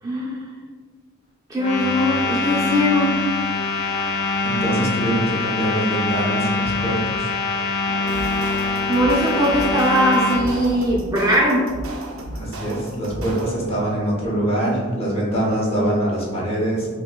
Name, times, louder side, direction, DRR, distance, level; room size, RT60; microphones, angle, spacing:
voice 1, 0.0-0.4 1.5-3.3 8.9-11.7, equal, 20° right, -5 dB, 0.5 m, -20 dB
sound 1, 1.6-10.4, left 3 dB, 55° left, 0.4 m, -24 dB
voice 2, 4.4-7.2 12.3-16.9, right 1 dB, 30° left, -4 dB, 0.9 m, -23 dB
sound 2, 7.9-10.7, equal, 40° right, 1.2 m, -33 dB
sound 3, 8.1-13.8, right 1 dB, 90° right, 0.5 m, -34 dB
5.2 x 2.2 x 2.2 m, 1.5 s
head